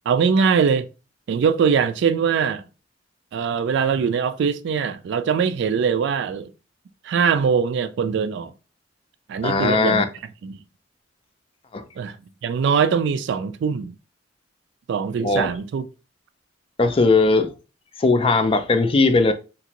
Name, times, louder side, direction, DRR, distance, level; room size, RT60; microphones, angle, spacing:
voice 1, 0.1-0.9 1.3-2.6 3.3-6.5 7.0-8.5 9.3-10.1 10.4-10.6 12.0-12.2 12.4-13.9 14.9-15.8, right 6 dB, 65° right, 0.3 m, -22 dB
voice 2, 9.4-10.0 11.7-11.8 15.2-15.5 16.8-17.5 18.0-19.3, left 3 dB, 30° left, 0.4 m, -18 dB
2.9 x 2.5 x 2.8 m
head